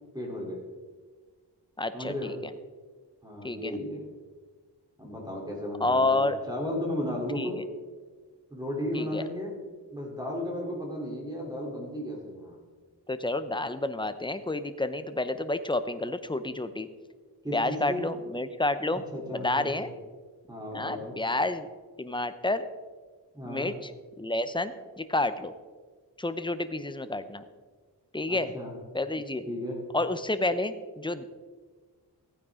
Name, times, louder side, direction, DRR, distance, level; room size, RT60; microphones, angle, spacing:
voice 1, 0.1-0.6 1.9-2.3 3.2-4.0 5.0-7.6 8.5-9.6 9.9-12.6 17.4-18.1 18.9-19.9 20.5-21.2 23.3-23.7 28.3-28.7 29.5-29.8, left 1 dB, 10° right, -2 dB, 3.4 m, -34 dB
voice 2, 1.8-2.5 3.4-3.8 5.8-6.4 7.3-7.6 8.9-9.2 13.1-16.9 17.5-19.0 19.3-19.9 20.7-21.7 22.0-22.7 23.4-23.9 24.2-25.5 26.2-27.4 28.1-28.5 28.9-29.5 29.9-31.3, left 2 dB, 10° left, 11 dB, 0.7 m, -29 dB
15.0 x 9.3 x 3.7 m, 1.5 s
wide cardioid pair, 65°, 41 cm